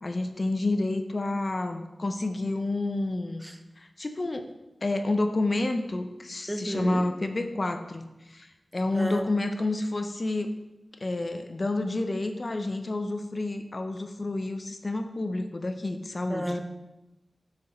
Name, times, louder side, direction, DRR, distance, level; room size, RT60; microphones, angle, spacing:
voice 1, 0.0-3.5 3.8-4.5 4.8-10.5 11.0-16.6, left 2 dB, 50° left, 7 dB, 0.7 m, -29 dB
voice 2, 6.5-7.0 8.9-9.2 16.3-16.6, equal, 10° right, 7 dB, 0.7 m, -30 dB
6.2 x 6.1 x 4.4 m, 1.0 s
wide cardioid pair, 60°, 0 cm